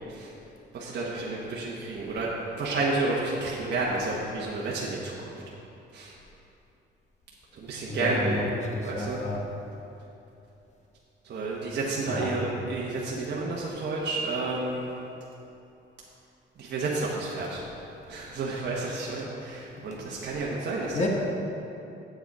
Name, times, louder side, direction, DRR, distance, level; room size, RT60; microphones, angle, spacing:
voice 1, 0.7-2.3 2.6-5.3 5.9-6.1 7.5-8.4 8.8-9.2 11.2-14.8 16.6-17.6 18.1-21.1, right 3 dB, 60° right, -5 dB, 1.3 m, -30 dB
voice 2, 7.9-9.4 12.1-12.3 19.8-20.0 20.9-21.1, left 2 dB, 35° left, 0 dB, 1.4 m, -31 dB
8.1 x 7.7 x 4.8 m, 2.9 s
cardioid pair, 90°, 20 cm